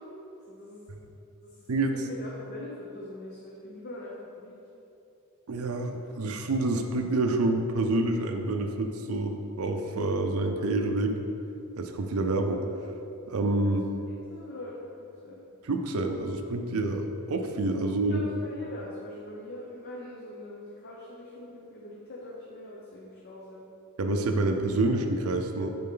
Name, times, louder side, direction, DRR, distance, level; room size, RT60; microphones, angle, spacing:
voice 1, 0.5-0.9 1.4-1.5 1.9-4.5 13.6-13.7 14.3-15.4 18.0-23.6, left 1 dB, 50° left, -4 dB, 0.8 m, -42 dB
voice 2, 5.5-11.2 11.8-12.6 13.3-13.8 15.6-18.2 24.0-25.7, right 2 dB, 75° right, 4 dB, 0.5 m, -27 dB
7.5 x 4.8 x 3.8 m, 2.8 s
head